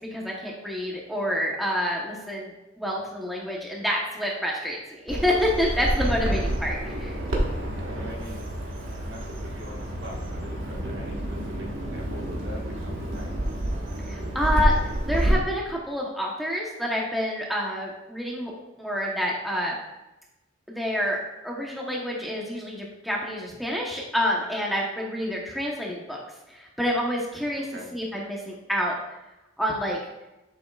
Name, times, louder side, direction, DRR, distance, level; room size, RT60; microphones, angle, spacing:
voice 1, 0.1-7.2 14.1-14.7 15.1-18.5 18.8-19.7 20.7-21.2 21.4-26.2 26.5-27.6 27.9-29.0 29.6-30.0, equal, ahead, -3 dB, 0.9 m, -28 dB
Bird vocalization bird call bird song, 5.1-15.3, right 1 dB, 75° right, 1.4 m, -29 dB
voice 2, 7.8-8.5 9.0-11.2 11.5-13.3 27.6-27.9, equal, 60° right, -2 dB, 1.5 m, -42 dB
sound 1, 9.6-14.6, equal, 15° left, 1.4 m, -48 dB
8.6 x 6.9 x 2.4 m, 0.98 s
head